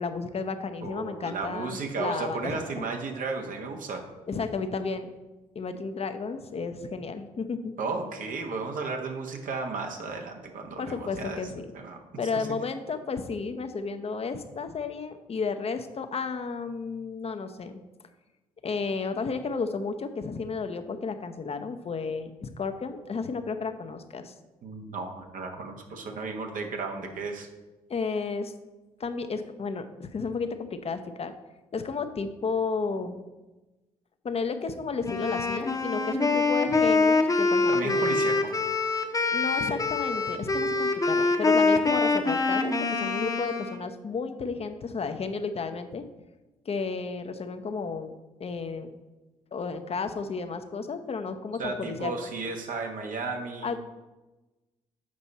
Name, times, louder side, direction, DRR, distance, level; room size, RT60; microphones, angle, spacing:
voice 1, 0.0-2.9 4.3-5.1 5.5-7.7 10.8-11.7 12.2-17.8 18.6-24.3 27.9-28.5 29.0-31.3 31.7-33.2 34.2-38.1 39.3-46.0 46.7-48.1 48.4-48.9 49.5-52.1 53.6-53.8, left 4 dB, 40° left, 8 dB, 0.8 m, -32 dB
voice 2, 0.8-4.0 7.8-11.4 11.7-12.0 12.3-12.5 24.6-27.5 37.7-38.5 51.6-53.8, right 4 dB, 60° right, 3 dB, 1.2 m, -34 dB
Wind instrument woodwind instrument, 35.0-43.8, left 3 dB, 25° left, 1.0 m, -25 dB
7.5 x 5.3 x 4.1 m, 1.1 s
hypercardioid pair, 50°, 15 cm